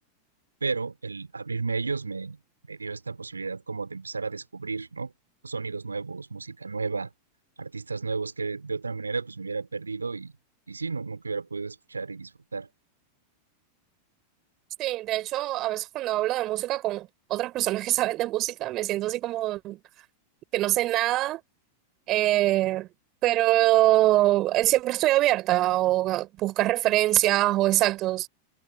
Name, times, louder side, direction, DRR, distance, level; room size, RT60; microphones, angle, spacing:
voice 1, 0.6-2.4 2.7-5.1 5.4-7.1 7.6-10.3 10.7-12.7, right 4 dB, 80° right, 3.8 m, -33 dB
voice 2, 14.8-19.8 20.5-21.4 22.1-22.9 23.2-28.3, right 16 dB, 35° right, 4.3 m, -24 dB
figure-of-eight pair, 90°, 0 cm